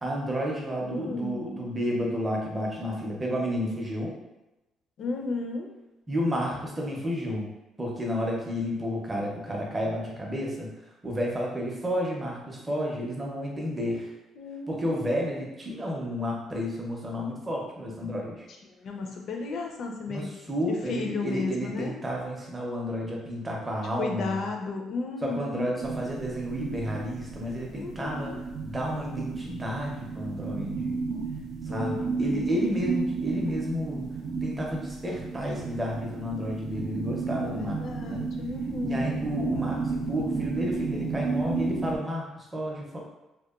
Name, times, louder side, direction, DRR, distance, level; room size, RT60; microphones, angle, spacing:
voice 1, 0.0-4.1 6.1-7.5 7.8-10.7 11.0-14.1 14.7-18.5 20.1-24.5 25.2-28.3 28.6-31.0 31.6-34.1 34.4-38.3 38.8-43.0, equal, 15° right, -2 dB, 0.5 m, -31 dB
voice 2, 0.8-1.3 5.0-5.7 14.4-14.9 18.8-20.4 20.7-21.9 24.0-25.7 27.7-28.4 31.7-32.4 37.4-39.1, left 4 dB, 50° left, 2 dB, 0.4 m, -34 dB
sound 1, 25.8-42.0, right 4 dB, 75° right, 0.4 m, -33 dB
2.8 x 2.1 x 2.3 m, 0.98 s
cardioid pair, 160°, 0 cm